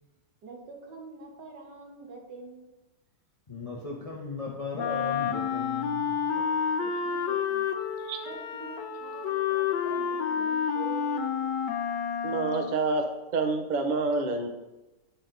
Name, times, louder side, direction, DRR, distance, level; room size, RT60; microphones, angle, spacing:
voice 1, 0.4-2.7 6.8-7.7 8.3-11.3, right 4 dB, 80° right, 0 dB, 1.9 m, -45 dB
voice 2, 3.5-6.2, left 3 dB, 40° left, -2 dB, 0.5 m, -37 dB
Wind instrument woodwind instrument, 4.8-12.9, left 7 dB, 85° left, 1.4 m, -29 dB
voice 3, 12.2-13.1 13.3-14.5, right 3 dB, 50° right, 5 dB, 0.5 m, -27 dB
10.0 x 4.2 x 3.9 m, 1.1 s
omnidirectional pair, 1.9 m